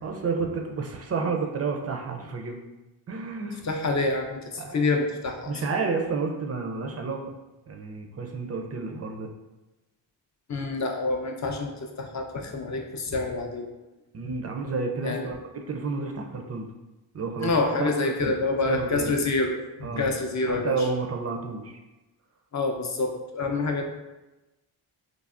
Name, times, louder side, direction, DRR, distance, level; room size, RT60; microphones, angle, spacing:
voice 1, 0.0-2.6 3.1-3.6 4.6-4.9 5.5-7.2 7.7-9.3 14.1-16.7 17.1-17.5 17.8-18.4 18.6-19.2 19.8-20.1 20.5-21.7, right 4 dB, 30° right, 3 dB, 0.4 m, -30 dB
voice 2, 3.6-5.5 10.5-11.7 12.0-13.7 15.0-15.3 17.4-19.6 19.9-20.9 22.5-23.8, left 3 dB, 35° left, 2 dB, 0.5 m, -27 dB
3.3 x 2.0 x 2.4 m, 1.1 s
cardioid pair, 50°, 50 cm